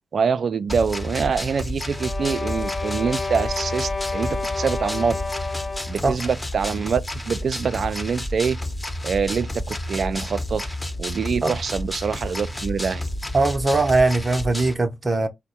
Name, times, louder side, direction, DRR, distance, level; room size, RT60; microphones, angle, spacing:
voice 1, 0.1-5.2 5.9-7.0 7.3-8.6 9.0-13.0, right 6 dB, 60° right, 0.4 m, -25 dB
sound 1, 0.7-14.7, left 1 dB, 15° left, 1.0 m, -31 dB
sound 2, 1.9-6.1, left 3 dB, 50° left, 0.5 m, -30 dB
voice 2, 13.3-15.3, right 3 dB, 30° right, 0.7 m, -20 dB
4.3 x 2.1 x 4.2 m
supercardioid pair, 50°, 0 cm